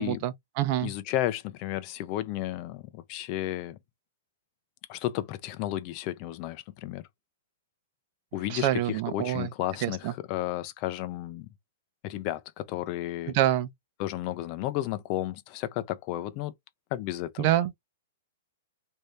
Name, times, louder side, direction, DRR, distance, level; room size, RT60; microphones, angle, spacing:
voice 1, 0.0-0.9 8.5-9.5 9.8-10.1 13.3-13.7 17.4-17.7, right 13 dB, 45° right, 0.6 m, -26 dB
voice 2, 0.8-3.8 4.9-7.1 8.3-11.5 12.0-13.4 14.0-16.5 16.9-17.5, left 14 dB, 40° left, 0.5 m, -33 dB
3.2 x 2.7 x 3.2 m
hypercardioid pair, 140°, 0 cm